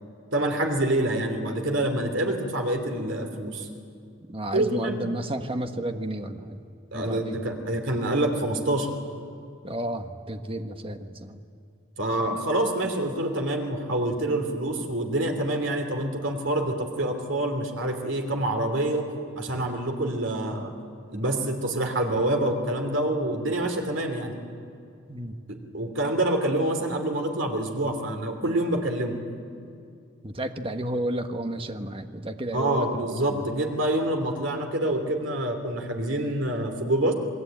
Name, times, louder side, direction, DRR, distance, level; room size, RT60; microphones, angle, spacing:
voice 1, 0.3-3.7 4.5-5.0 6.9-8.9 12.0-19.1 19.3-20.7 21.1-24.3 25.5-29.2 32.5-37.1, right 1 dB, 65° right, 4 dB, 3.0 m, -26 dB
voice 2, 4.3-6.6 6.9-7.4 9.6-11.4 12.2-12.4 25.1-25.4 30.2-33.5, right 1 dB, 25° right, 7 dB, 1.3 m, -32 dB
27.5 x 20.0 x 9.0 m, 2.5 s
head